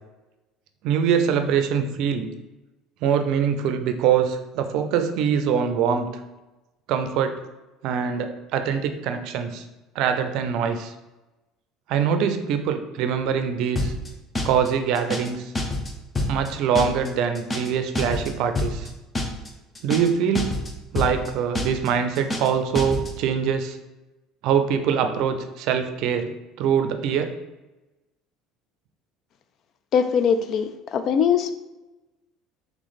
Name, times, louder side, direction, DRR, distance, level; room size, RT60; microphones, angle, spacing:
voice 1, 0.8-2.3 3.0-6.1 6.9-7.4 7.8-9.6 9.9-10.9 11.9-13.9 14.4-15.5 16.3-18.9 19.8-20.6 20.9-23.8 24.4-26.3 26.6-27.4, right 7 dB, 65° right, 7 dB, 0.4 m, -23 dB
sound 1, 13.8-14.1 14.4-14.7 15.0-15.3 15.6-16.5 16.8-17.1 17.4-17.7 18.0-18.3 18.6-18.9 19.2-19.5 19.8-20.1 20.4-20.7 21.0-21.3 21.6-21.9 22.2-22.5 22.8-23.1, left 2 dB, 25° left, 0.7 m, -26 dB
voice 2, 29.9-31.6, left 7 dB, 55° left, 10 dB, 0.4 m, -21 dB
3.4 x 3.1 x 4.0 m, 1.1 s
hypercardioid pair, 80°, 0 cm